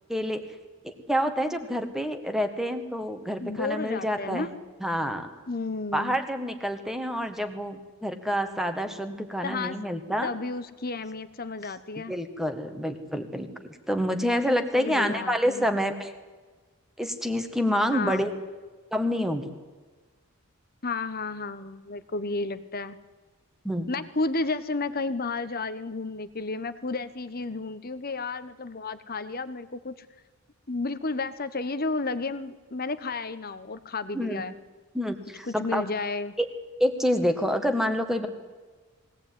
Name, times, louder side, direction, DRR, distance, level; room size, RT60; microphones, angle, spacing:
voice 1, 0.1-0.4 0.8-4.5 4.8-5.3 5.9-10.3 11.9-13.5 13.9-16.1 17.0-18.3 18.9-19.5 23.6-23.9 34.1-34.4 34.9-35.8 36.4-36.5 36.8-38.3, equal, ahead, 7 dB, 1.7 m, -27 dB
voice 2, 3.4-4.5 5.5-6.2 9.4-9.8 10.2-12.1 14.7-15.7 17.9-18.3 20.8-23.0 23.9-30.1 30.7-34.5 35.4-36.3, left 3 dB, 40° left, 12 dB, 1.2 m, -32 dB
21.5 x 17.5 x 9.5 m, 1.3 s
head